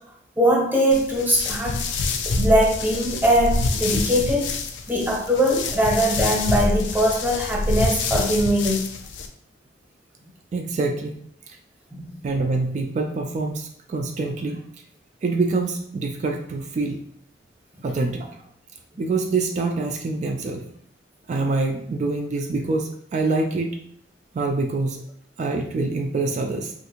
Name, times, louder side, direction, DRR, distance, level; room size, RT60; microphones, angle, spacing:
voice 1, 0.4-1.9 2.3-4.5 4.9-8.8 11.9-12.1, equal, 10° right, -2 dB, 0.8 m, -21 dB
sound 1, 0.9-9.3, left 3 dB, 85° left, 0.4 m, -26 dB
voice 2, 10.5-11.2 11.5-11.6 12.2-14.6 15.2-17.0 17.8-18.4 19.0-20.7 21.3-23.8 24.3-25.0 25.4-26.7, right 3 dB, 40° right, 3 dB, 0.3 m, -25 dB
3.4 x 2.5 x 2.9 m, 0.65 s
head